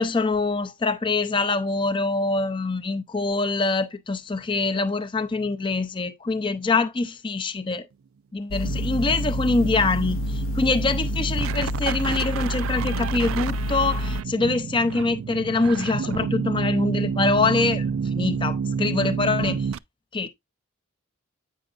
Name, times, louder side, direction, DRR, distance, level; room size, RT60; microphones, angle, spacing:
voice 1, 0.0-7.9 8.3-19.7 20.1-20.3, left 3 dB, 25° left, 0.5 m, -24 dB
sound 1, 8.5-14.2, left 1 dB, 65° left, 0.6 m, -28 dB
sound 2, 8.6-19.8, right 6 dB, 70° right, 0.3 m, -29 dB
8.7 x 6.4 x 2.4 m
head